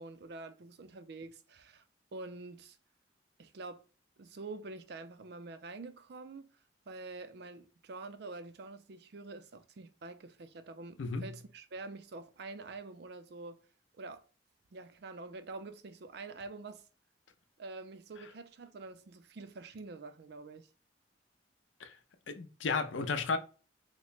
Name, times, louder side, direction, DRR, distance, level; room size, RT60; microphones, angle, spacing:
voice 1, 0.0-1.8 2.1-2.8 3.4-3.8 4.2-6.5 6.9-13.6 14.0-14.2 14.7-16.8 17.6-20.7, right 3 dB, 60° right, 0.4 m, -46 dB
voice 2, 11.0-11.3 21.8-21.9 22.3-23.4, left 4 dB, 85° left, 0.6 m, -33 dB
3.0 x 2.1 x 3.9 m
head